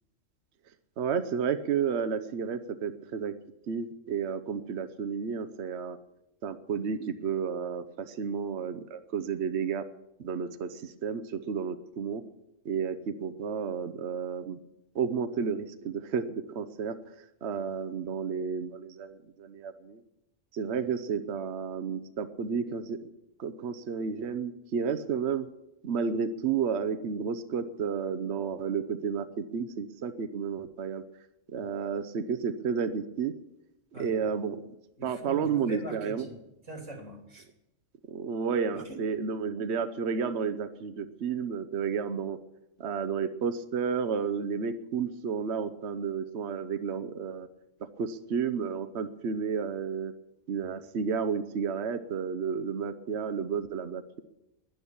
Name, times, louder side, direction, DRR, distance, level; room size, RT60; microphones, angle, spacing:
voice 1, 1.0-3.3 3.7-6.0 6.4-9.8 10.2-12.2 12.6-14.6 14.9-20.0 20.5-23.0 23.4-25.5 25.8-31.0 31.5-33.3 33.9-34.6 35.0-36.3 38.1-42.4 42.8-47.5 48.0-50.1 50.5-54.2, right 6 dB, 65° right, 10 dB, 1.0 m, -31 dB
voice 2, 35.0-37.5 38.7-39.0, right 1 dB, 85° right, 3 dB, 3.5 m, -43 dB
11.0 x 10.5 x 10.0 m, 0.92 s
omnidirectional pair, 1.3 m